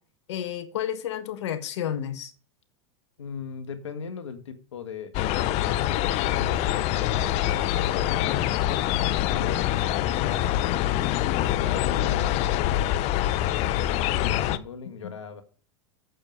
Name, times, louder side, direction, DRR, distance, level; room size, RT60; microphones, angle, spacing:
voice 1, 0.3-2.3 15.0-15.1, left 10 dB, 75° left, 1.6 m, -31 dB
voice 2, 3.2-5.2 5.4-8.5 9.3-10.8 11.4-15.4, left 6 dB, 90° left, 1.7 m, -39 dB
sound 1, 5.1-14.6, left 13 dB, 45° left, 0.7 m, -25 dB
8.8 x 6.9 x 6.3 m
hypercardioid pair, 105°, 15 cm